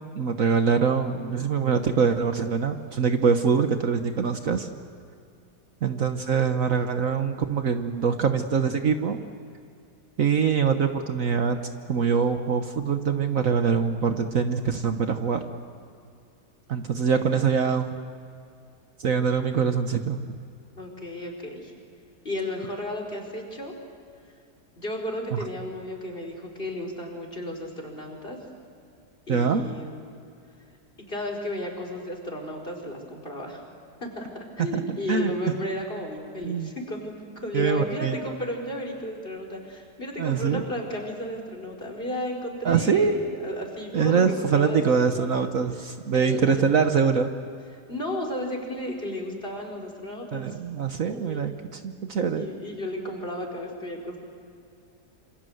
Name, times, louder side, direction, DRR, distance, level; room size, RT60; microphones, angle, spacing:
voice 1, 0.1-4.7 5.8-9.2 10.2-11.6 11.9-15.4 16.7-17.9 19.0-20.4 25.3-25.4 29.3-29.6 34.7-35.3 36.4-36.7 37.5-38.2 40.2-40.6 42.6-43.2 43.9-47.3 50.3-52.5, right 6 dB, 55° right, 7 dB, 1.4 m, -24 dB
voice 2, 20.7-21.7 22.2-23.7 24.8-28.4 29.3-30.2 31.1-33.6 34.0-45.5 46.1-46.7 47.9-50.6 51.0-51.5 52.3-54.2, left 1 dB, 35° left, 2 dB, 4.8 m, -34 dB
28.0 x 26.0 x 7.9 m, 2.5 s
omnidirectional pair, 1.7 m